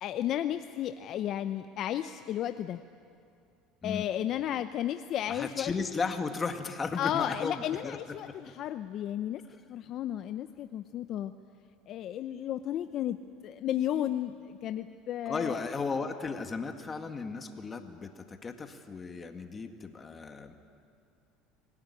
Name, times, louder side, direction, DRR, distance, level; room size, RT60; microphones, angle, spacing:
voice 1, 0.0-2.8 3.8-5.7 7.0-9.4 9.7-11.3 11.9-13.2 13.4-15.6, left 11 dB, 50° left, 10 dB, 0.7 m, -33 dB
voice 2, 5.3-8.0 8.3-8.5 15.3-20.5, left 4 dB, 25° left, 6 dB, 1.9 m, -35 dB
24.5 x 18.0 x 9.9 m, 2.4 s
supercardioid pair, 120°, 0 cm